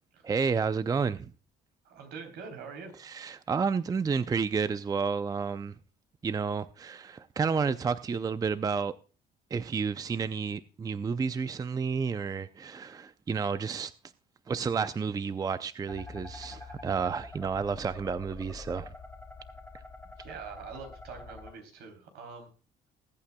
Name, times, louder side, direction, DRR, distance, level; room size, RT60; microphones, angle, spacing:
voice 1, 0.2-1.3 3.0-5.8 6.2-8.9 9.5-13.9 14.5-18.9, right 5 dB, 20° right, 0.5 m, -31 dB
voice 2, 1.8-2.9 20.2-22.5, right 5 dB, 75° right, 3.3 m, -44 dB
sound 1, 15.9-21.5, left 3 dB, 5° left, 2.0 m, -46 dB
20.5 x 8.6 x 2.2 m
cardioid pair, 110°, 17 cm